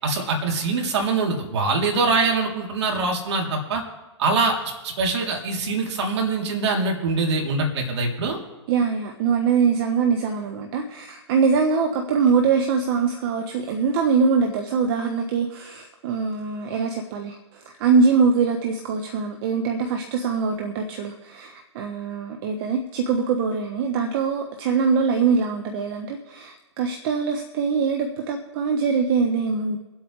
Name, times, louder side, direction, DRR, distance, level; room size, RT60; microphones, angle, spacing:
voice 1, 0.0-3.8 4.2-4.5 4.8-8.4, right 3 dB, 65° right, 0 dB, 3.4 m, -23 dB
voice 2, 8.7-29.8, right 5 dB, 50° right, 3 dB, 1.3 m, -23 dB
24.5 x 8.3 x 3.3 m, 1.1 s
hypercardioid pair, 125°, 15 cm